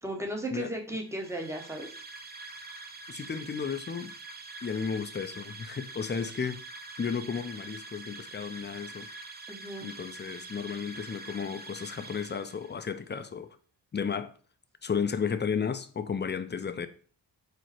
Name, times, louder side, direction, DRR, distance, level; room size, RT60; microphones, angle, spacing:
voice 1, 0.0-1.9 9.5-9.9, right 1 dB, 5° right, 1.0 m, -35 dB
sound 1, 1.1-12.9, right 3 dB, 20° right, 0.5 m, -45 dB
voice 2, 3.1-4.1 4.6-6.6 7.0-9.1 9.8-13.6 13.9-14.3 14.8-16.9, left 6 dB, 25° left, 0.4 m, -33 dB
4.6 x 2.1 x 4.2 m
cardioid pair, 50°, 44 cm